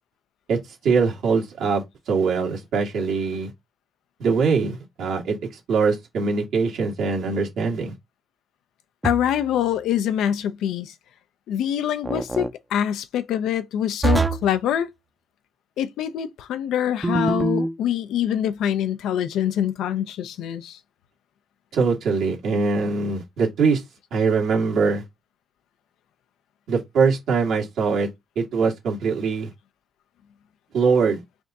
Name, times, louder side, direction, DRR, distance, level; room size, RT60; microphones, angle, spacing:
voice 1, 0.8-3.5 4.2-5.4 5.7-7.9 21.7-23.8 24.1-25.0 26.7-28.1 28.3-29.5 30.7-31.2, right 5 dB, 75° right, 1.6 m, -22 dB
voice 2, 9.0-10.9 11.5-14.9 15.8-20.8, left 10 dB, 85° left, 0.5 m, -25 dB
sound 1, 9.0-9.5 12.0-12.5 14.0-14.6 17.0-17.7, right 3 dB, 15° right, 0.5 m, -24 dB
3.4 x 2.6 x 3.9 m
cardioid pair, 90°, 0 cm